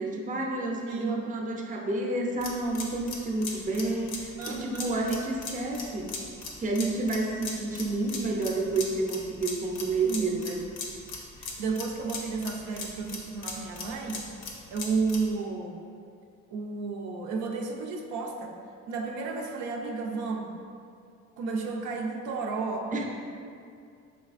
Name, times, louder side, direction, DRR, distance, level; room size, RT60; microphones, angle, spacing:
voice 1, 0.0-6.2 6.6-10.6 22.9-23.0, right 2 dB, 25° right, 0 dB, 0.5 m, -30 dB
voice 2, 0.9-1.3 4.4-4.9 10.0-10.5 11.4-14.3 14.7-15.9 16.5-18.5 18.9-20.5 21.4-23.0, right 4 dB, 85° right, 0 dB, 0.5 m, -32 dB
sound 1, 2.4-15.3, left 4 dB, 85° left, 0.7 m, -39 dB
4.0 x 3.2 x 2.4 m, 2.3 s
cardioid pair, 90°, 30 cm